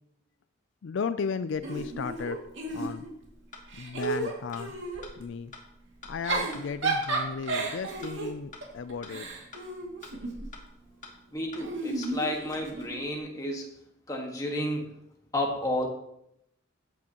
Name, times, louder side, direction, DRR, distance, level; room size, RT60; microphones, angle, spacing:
voice 1, 0.8-2.4 2.7-3.0 3.8-4.7 5.2-5.5 6.1-9.3, left 5 dB, 70° left, 12 dB, 0.4 m, -34 dB
Giggle / Chuckle chortle, 1.6-3.3 3.7-5.1 6.0-10.5 11.6-13.0, right 3 dB, 65° right, 2.3 m, -33 dB
sound 1, 3.5-3.6 4.0-4.1 4.5-4.6 5.0-5.1 5.5-5.6 6.0-6.1 6.5-6.6 7.0-7.1 7.5-7.6 8.0-8.1 8.5-8.6 9.0-9.1 9.5-9.6 10.0-10.1 10.5-10.6 11.0-11.1 11.5-11.6 12.0-12.1 12.5-12.6, left 4 dB, 40° left, 1.8 m, -45 dB
voice 2, 11.3-13.8 14.1-15.0 15.3-15.9, left 1 dB, 15° left, 0 dB, 1.5 m, -31 dB
14.0 x 8.5 x 3.0 m, 0.77 s
head